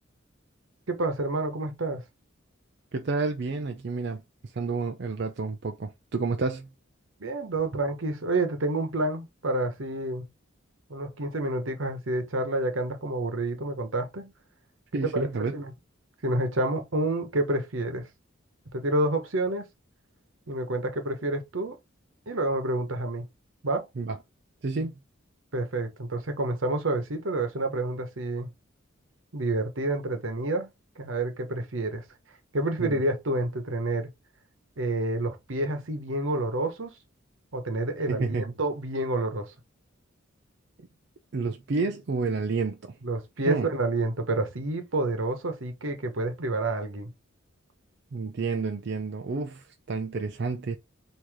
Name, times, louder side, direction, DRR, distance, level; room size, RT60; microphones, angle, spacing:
voice 1, 0.9-2.0 7.2-10.3 10.9-14.3 15.1-15.3 15.5-15.7 16.2-18.1 18.7-19.7 20.5-21.8 22.3-23.3 23.6-23.9 25.5-28.5 29.3-30.7 31.0-32.0 32.5-34.1 34.8-36.9 37.5-39.5 43.0-47.1, right 2 dB, 85° right, 1.1 m, -29 dB
voice 2, 2.9-6.7 14.9-15.6 24.0-24.2 24.6-24.9 32.8-33.0 38.1-38.5 41.3-43.0 43.5-43.7 48.1-50.8, right 4 dB, 55° right, 0.5 m, -30 dB
4.7 x 2.9 x 3.6 m
head